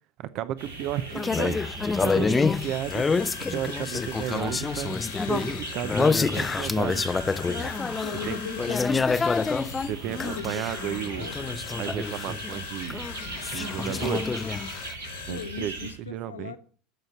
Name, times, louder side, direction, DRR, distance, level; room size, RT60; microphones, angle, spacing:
voice 1, 0.2-1.6 2.0-5.0 5.3-7.1 8.3-8.4 9.8-11.3 11.8-13.2 13.4-14.4 15.2-16.5, right 11 dB, 50° right, 0.6 m, -33 dB
sound 1, 0.6-15.9, right 2 dB, 75° right, 5.2 m, -39 dB
sound 2, 1.1-12.6 12.9-14.9, left 4 dB, 20° left, 0.5 m, -27 dB
sound 3, 2.5-15.5, left 11 dB, 65° left, 0.9 m, -42 dB
voice 2, 8.0-9.1 10.2-11.6 15.3-16.6, left 7 dB, 80° left, 1.2 m, -39 dB
14.5 x 6.5 x 5.7 m
figure-of-eight pair, 75°, 0 cm